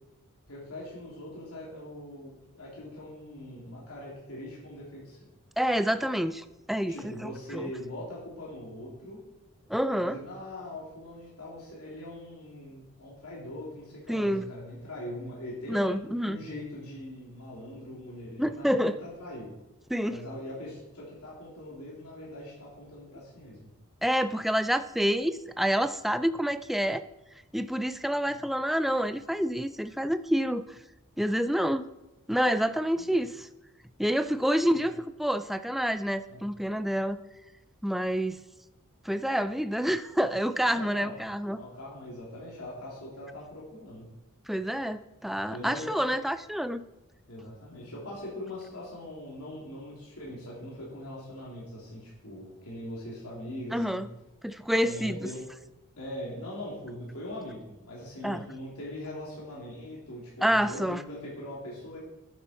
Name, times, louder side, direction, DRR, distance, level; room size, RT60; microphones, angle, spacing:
voice 1, 0.5-5.3 6.9-9.2 10.0-15.9 16.2-19.5 20.1-23.6 28.3-28.4 32.9-33.2 34.6-34.9 36.3-36.4 40.7-41.2 41.5-44.1 45.5-46.0 47.3-54.1 54.8-55.4 56.0-62.0, left 1 dB, 85° left, -5 dB, 3.1 m, -41 dB
voice 2, 5.6-7.7 9.7-10.2 14.1-14.5 15.7-16.4 18.4-19.0 19.9-20.2 24.0-27.0 27.5-30.7 31.2-31.9 32.3-33.5 34.0-34.9 35.2-37.2 37.8-38.4 39.0-41.6 44.5-46.8 53.7-54.1 54.4-55.3 58.2-58.4 60.4-61.0, equal, ahead, 11 dB, 0.3 m, -28 dB
11.0 x 9.3 x 4.4 m, 0.97 s
head